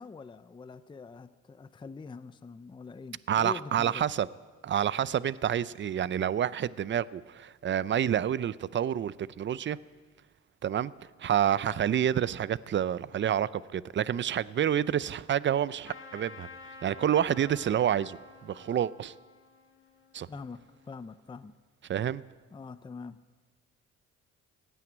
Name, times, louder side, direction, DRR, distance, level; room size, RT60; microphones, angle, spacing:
voice 1, 0.0-4.0 20.3-21.5 22.5-23.2, left 4 dB, 15° left, 0.5 m, -44 dB
voice 2, 3.3-4.3 4.6-9.8 10.6-10.9 11.2-16.5 16.8-19.1 20.1-20.3 21.9-22.2, right 10 dB, 40° right, 0.5 m, -28 dB
Trumpet, 15.8-20.9, left 3 dB, 45° left, 1.9 m, -51 dB
16.0 x 9.3 x 9.0 m
cardioid pair, 90°, 30 cm